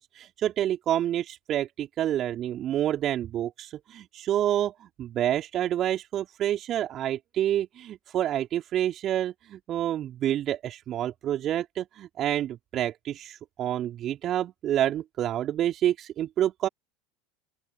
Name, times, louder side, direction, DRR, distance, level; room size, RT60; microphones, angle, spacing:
voice 1, 0.0-16.7, right 11 dB, 40° right, 3.7 m, -28 dB
open air
figure-of-eight pair, 75°, 0 cm